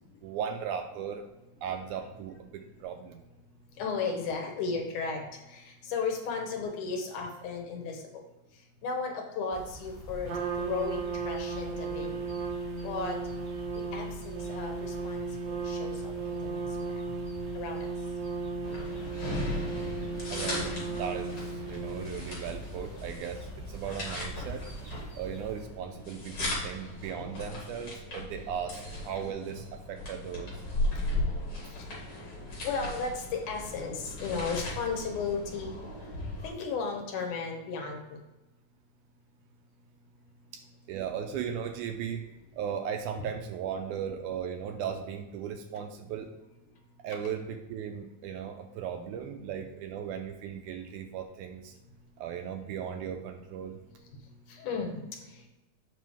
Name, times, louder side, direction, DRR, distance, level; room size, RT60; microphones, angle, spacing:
voice 1, 0.2-1.2 1.6-3.2 20.3-24.6 25.2-30.5 40.5-40.6 40.9-42.2 42.6-46.3 47.0-51.7 52.2-53.8, right 8 dB, 80° right, 5 dB, 1.9 m, -37 dB
voice 2, 3.8-5.2 5.5-8.0 8.8-12.3 12.8-13.2 13.9-15.3 15.6-16.6 17.5-17.9 32.6-35.7 36.4-38.2 54.5-55.0, left 5 dB, 70° left, 2 dB, 2.5 m, -34 dB
sound 1, 9.5-25.6, right 2 dB, 5° left, 2.0 m, -46 dB
Trumpet, 10.3-22.4, right 4 dB, 65° right, 2.1 m, -35 dB
sound 2, 18.6-36.5, left 1 dB, 40° left, 3.1 m, -37 dB
7.5 x 5.9 x 3.4 m, 1.1 s
omnidirectional pair, 3.9 m